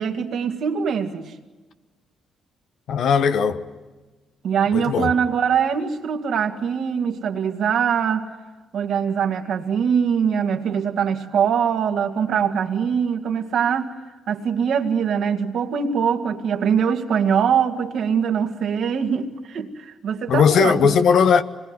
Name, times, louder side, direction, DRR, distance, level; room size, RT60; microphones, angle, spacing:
voice 1, 0.0-1.3 4.4-8.3 8.7-14.0 14.3-21.0, right 7 dB, 70° right, 2.3 m, -22 dB
voice 2, 2.9-3.6 4.7-5.1 20.3-21.4, left 6 dB, 70° left, 1.3 m, -18 dB
25.5 x 21.5 x 9.8 m
supercardioid pair, 65°, 0 cm